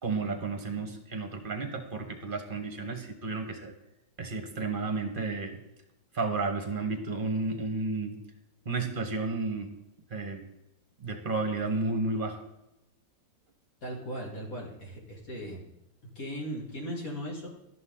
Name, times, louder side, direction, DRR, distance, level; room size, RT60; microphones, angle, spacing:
voice 1, 0.0-3.7 4.2-5.6 6.1-8.2 8.6-9.8 10.1-10.4 11.0-12.4, right 3 dB, 30° right, 6 dB, 1.4 m, -32 dB
voice 2, 13.8-15.6 16.1-17.5, equal, 45° left, -2 dB, 2.9 m, -37 dB
13.0 x 11.0 x 3.9 m, 0.91 s
omnidirectional pair, 2.0 m